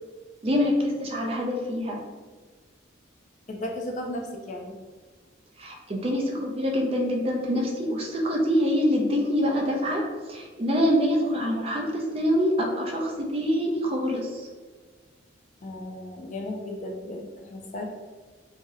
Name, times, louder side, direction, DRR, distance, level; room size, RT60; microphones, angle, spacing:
voice 1, 0.4-2.0 5.6-14.5, equal, 30° right, 0 dB, 0.4 m, -25 dB
voice 2, 3.5-4.7 15.6-17.8, left 1 dB, 40° left, 1 dB, 0.4 m, -35 dB
2.6 x 2.0 x 3.6 m, 1.4 s
head